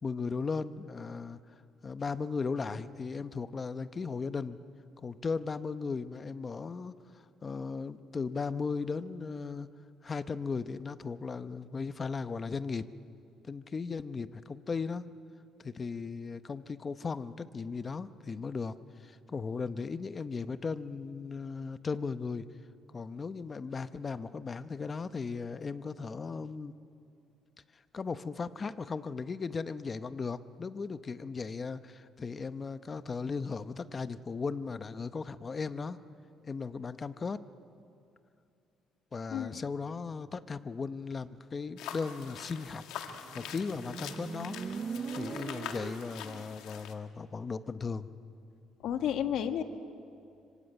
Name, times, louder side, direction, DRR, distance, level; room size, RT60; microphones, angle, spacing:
voice 1, 0.0-1.4 1.8-4.6 5.0-9.7 10.0-12.9 13.4-15.1 15.6-22.5 22.9-26.7 27.9-36.0 36.4-37.4 39.1-42.8 43.3-44.6 45.1-48.1, left 4 dB, 25° left, 12 dB, 0.8 m, -37 dB
sound 1, 41.8-46.9, left 9 dB, 80° left, 2.0 m, -44 dB
Motorcycle, 43.1-46.6, right 6 dB, 35° right, 0.7 m, -41 dB
voice 2, 48.8-49.6, left 9 dB, 65° left, 7 dB, 1.6 m, -31 dB
25.5 x 24.5 x 8.9 m, 2.6 s
cardioid pair, 145°, 0 cm